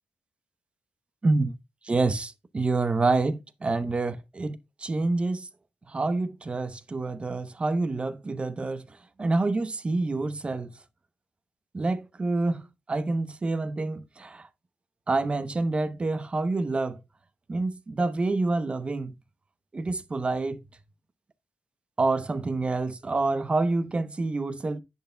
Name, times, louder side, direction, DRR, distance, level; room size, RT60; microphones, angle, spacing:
voice 1, 1.2-1.5 1.8-5.5 5.9-10.7 11.7-14.5 15.1-17.0 17.5-19.1 19.7-20.6 22.0-24.8, right 3 dB, 30° right, 0.7 m, -27 dB
10.5 x 8.1 x 2.2 m
wide cardioid pair, 120°, 4 cm